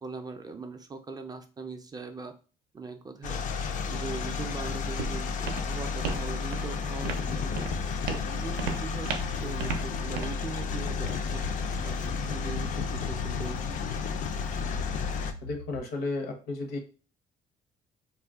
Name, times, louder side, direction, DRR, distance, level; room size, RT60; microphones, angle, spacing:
voice 1, 0.0-2.3 2.7-3.6 3.9-7.7 8.1-9.1 9.4-11.4 11.8-13.8, right 4 dB, 25° right, 6 dB, 0.3 m, -40 dB
sound 1, 3.2-15.3, left 5 dB, 50° left, 0.4 m, -32 dB
Walk footsteps, 4.3-12.3, right 5 dB, 90° right, 0.5 m, -38 dB
sound 2, 7.8-15.8, left 4 dB, 90° left, 1.2 m, -43 dB
voice 2, 15.4-16.8, left 2 dB, 70° left, 4 dB, 0.8 m, -33 dB
2.3 x 2.1 x 3.4 m, 0.36 s
cardioid pair, 110°, 17 cm